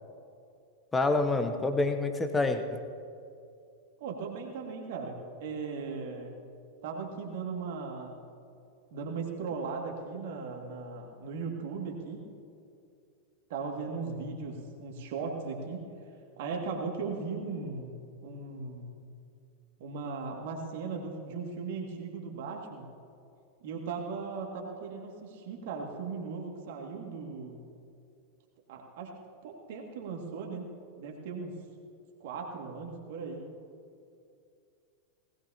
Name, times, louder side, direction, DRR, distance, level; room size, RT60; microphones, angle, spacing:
voice 1, 0.9-2.8, left 2 dB, 10° left, 7 dB, 1.1 m, -27 dB
voice 2, 4.0-6.3 6.8-8.2 8.9-12.3 13.5-15.9 16.4-18.9 19.8-22.9 23.6-27.6 28.7-29.1 29.4-30.7 31.0-31.6 32.2-33.5, right 4 dB, 50° right, 1 dB, 2.3 m, -38 dB
19.5 x 17.0 x 2.9 m, 2.4 s
figure-of-eight pair, 90°, 0 cm